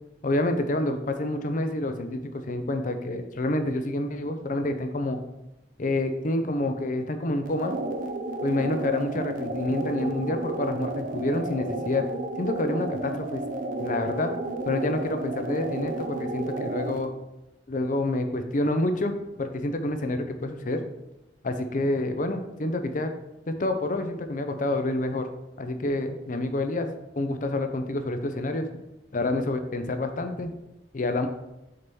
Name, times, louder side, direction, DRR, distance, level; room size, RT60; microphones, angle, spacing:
voice 1, 0.2-5.2 5.8-7.7 8.4-12.0 12.4-13.4 13.8-14.3 14.7-17.1 17.7-19.1 19.4-20.8 21.4-23.1 23.5-25.3 25.6-26.9 27.2-28.7 29.1-30.5 30.9-31.3, left 2 dB, 50° left, 7 dB, 0.6 m, -28 dB
sound 1, 7.4-17.1, right 2 dB, 50° right, 0.5 m, -32 dB
6.5 x 2.9 x 5.4 m, 0.95 s
head